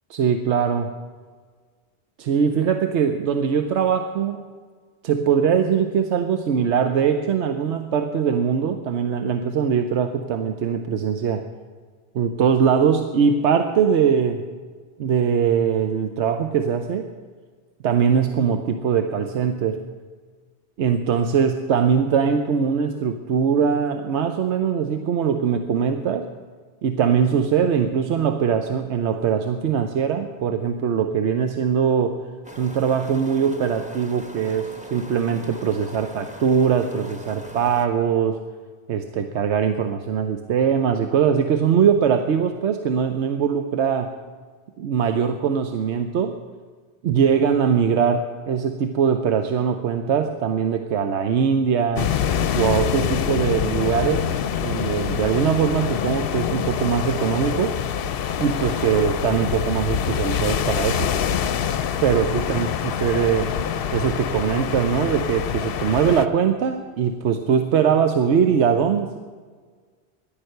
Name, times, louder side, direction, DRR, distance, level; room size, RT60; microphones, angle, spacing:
voice 1, 0.1-0.9 2.2-4.4 5.0-11.4 12.1-14.4 15.0-17.1 17.8-19.8 20.8-26.3 26.8-32.2 32.6-38.4 38.9-44.1 44.8-46.4 47.0-52.1 52.5-54.3 54.6-57.8 58.4-61.1 62.0-62.7 63.0-63.5 63.9-69.2, right 7 dB, 90° right, 6 dB, 1.0 m, -21 dB
sound 1, 32.4-37.9, equal, 5° right, 0.9 m, -40 dB
sound 2, 52.0-66.3, left 8 dB, 65° left, 0.7 m, -25 dB
14.0 x 11.0 x 6.5 m, 1.5 s
omnidirectional pair, 1.1 m